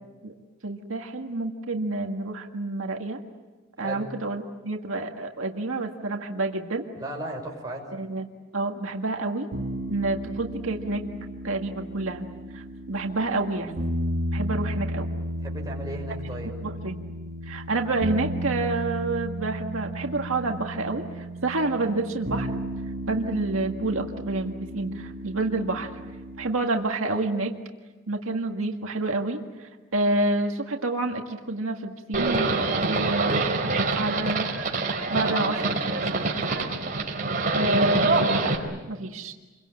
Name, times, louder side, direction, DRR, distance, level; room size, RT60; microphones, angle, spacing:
voice 1, 0.6-3.2 3.8-6.9 7.9-8.3 8.5-9.5 9.9-11.1 11.4-12.3 12.5-13.8 14.3-15.1 16.6-17.0 17.4-22.5 23.1-25.9 26.4-27.6 28.1-32.5 32.9-33.5 34.0-34.8 35.1-35.7 36.1-36.2 37.5-39.3, right 2 dB, 80° right, 3 dB, 1.8 m, -28 dB
voice 2, 6.9-7.9 15.4-16.5 35.2-36.3, right 1 dB, 20° right, -1 dB, 6.0 m, -35 dB
sound 1, 9.5-26.5, right 1 dB, 55° right, 2.4 m, -34 dB
Livestock farm animals working animals, 32.1-38.6, right 3 dB, 40° right, 4.2 m, -25 dB
28.0 x 23.5 x 8.8 m, 1.3 s
head